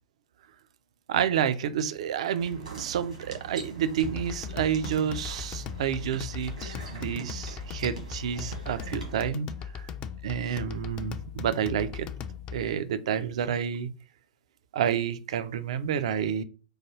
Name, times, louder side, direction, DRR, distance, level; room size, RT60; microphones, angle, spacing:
voice 1, 1.1-9.5 9.7-9.9 10.2-12.1 12.5-13.9 14.7-16.4, right 8 dB, 60° right, 12 dB, 0.3 m, -29 dB
sound 1, 2.4-9.1, right 5 dB, 75° right, 1.3 m, -43 dB
sound 2, 4.0-12.8, left 7 dB, 30° left, 0.3 m, -39 dB
4.6 x 2.3 x 3.0 m, 0.37 s
figure-of-eight pair, 100°, 4 cm